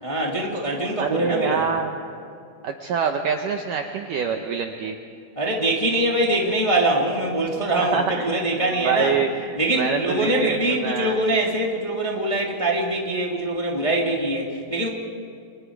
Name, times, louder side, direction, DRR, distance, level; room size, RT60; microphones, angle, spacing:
voice 1, 0.0-1.7 5.4-9.2 9.6-14.9, right 1 dB, 10° left, -1 dB, 1.7 m, -23 dB
voice 2, 1.0-2.0 2.6-5.0 7.8-8.3 8.7-11.2, right 6 dB, 70° right, 4 dB, 2.1 m, -25 dB
30.0 x 25.5 x 4.8 m, 2.4 s
omnidirectional pair, 4.9 m